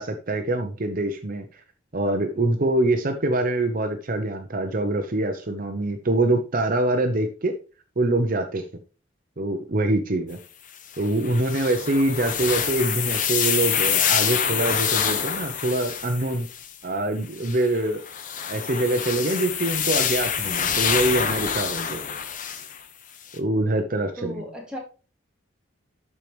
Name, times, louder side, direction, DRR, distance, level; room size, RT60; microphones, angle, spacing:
voice 1, 0.0-1.5 1.9-7.5 8.0-8.6 9.4-10.4 11.0-16.5 16.8-18.0 18.5-22.0 23.3-24.4, right 2 dB, 45° right, 5 dB, 0.8 m, -24 dB
sound 1, 10.9-16.7 17.4-22.8 23.3-23.4, left 8 dB, 45° left, 0.9 m, -26 dB
voice 2, 24.2-24.8, equal, 5° right, -1 dB, 2.4 m, -35 dB
12.5 x 4.6 x 3.3 m, 0.35 s
head